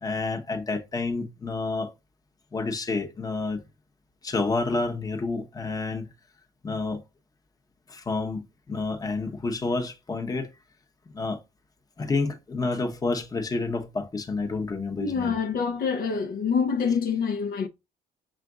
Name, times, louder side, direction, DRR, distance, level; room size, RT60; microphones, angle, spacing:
voice 1, 0.0-1.9 2.5-3.6 4.2-6.1 6.6-7.0 7.9-10.5 11.1-11.4 12.0-15.3, left 3 dB, 20° left, 0.9 m, -29 dB
voice 2, 15.0-17.7, left 6 dB, 60° left, 0.7 m, -26 dB
5.7 x 2.5 x 3.7 m
cardioid pair, 110°, 17 cm